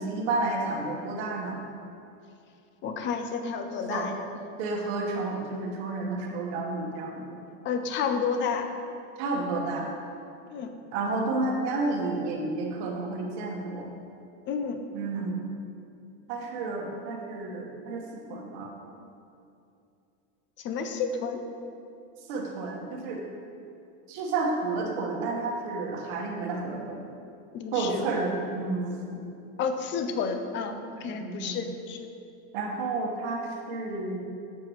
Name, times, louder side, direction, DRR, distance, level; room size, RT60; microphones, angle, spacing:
voice 1, 0.0-1.6 3.9-4.1 4.6-7.4 9.2-9.9 10.9-13.9 14.9-15.4 16.3-18.7 22.3-23.2 24.1-27.0 27.7-29.2 31.1-31.6 32.5-34.2, right 3 dB, 65° right, 0 dB, 1.2 m, -31 dB
voice 2, 2.8-4.3 7.6-8.7 10.5-10.7 14.5-14.8 20.6-21.4 27.5-28.0 29.6-32.1, left 5 dB, 30° left, 7 dB, 0.5 m, -30 dB
7.6 x 4.7 x 4.6 m, 2.6 s
supercardioid pair, 145°, 37 cm